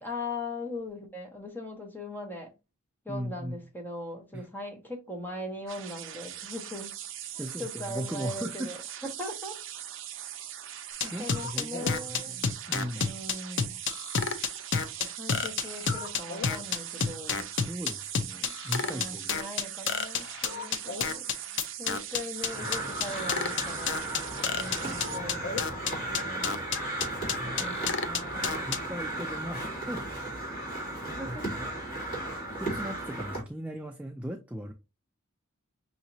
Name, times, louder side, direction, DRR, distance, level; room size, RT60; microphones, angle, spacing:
voice 1, 0.0-2.5 3.0-7.0 7.3-8.8 9.2-9.6 11.0-12.4 12.9-13.8 15.0-17.4 18.4-18.5 18.8-21.3 21.8-24.1 24.4-26.7 27.6-28.7 30.9-31.5, left 1 dB, 10° left, 0.9 m, -40 dB
voice 2, 3.1-3.5 4.3-4.5 7.4-8.7 11.0-13.1 13.7-13.8 17.3-19.4 22.6-22.7 27.3-27.8 28.7-30.0 31.3-31.7 32.6-34.7, equal, 5° right, 0.3 m, -38 dB
sound 1, 5.7-25.2, right 11 dB, 60° right, 0.6 m, -41 dB
sound 2, 11.0-28.8, left 6 dB, 55° left, 0.6 m, -29 dB
Crow, 22.3-33.4, right 1 dB, 40° left, 2.8 m, -35 dB
5.6 x 2.9 x 2.7 m
head